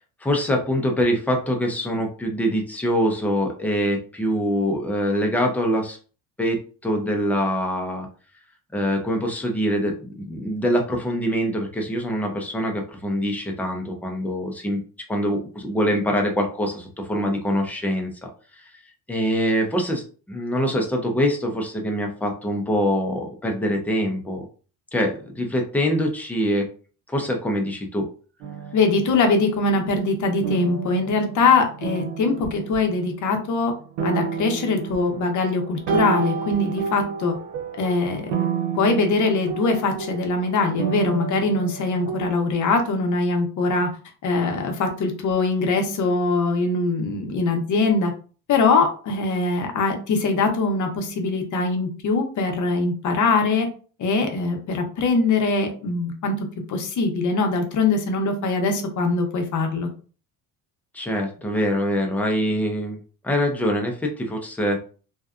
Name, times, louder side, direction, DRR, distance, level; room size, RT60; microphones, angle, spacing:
voice 1, 0.2-6.0 6.4-8.1 8.7-18.1 18.6-18.7 19.1-24.5 24.9-26.7 27.1-28.1 60.9-63.0 63.2-64.8, equal, 5° left, 1 dB, 0.4 m, -24 dB
sound 1, 28.4-29.6 30.4-33.6 34.0-42.3, right 6 dB, 80° right, 0.6 m, -30 dB
voice 2, 28.7-33.7 34.0-37.3 37.8-38.3 38.7-43.9 44.2-48.1 48.5-53.7 54.0-59.9, left 3 dB, 45° left, 4 dB, 0.7 m, -22 dB
2.7 x 2.2 x 2.3 m, 0.39 s
cardioid pair, 120°, 42 cm